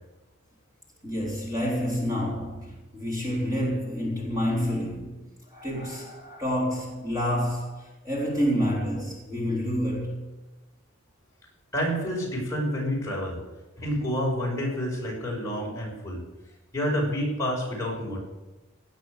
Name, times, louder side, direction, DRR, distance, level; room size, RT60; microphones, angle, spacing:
voice 1, 1.0-10.2, equal, 15° right, 3.6 m, -28 dB
voice 2, 11.7-13.4 13.8-16.2 16.7-18.2, equal, 15° left, 6.0 m, -28 dB
18.0 x 9.5 x 6.6 m
head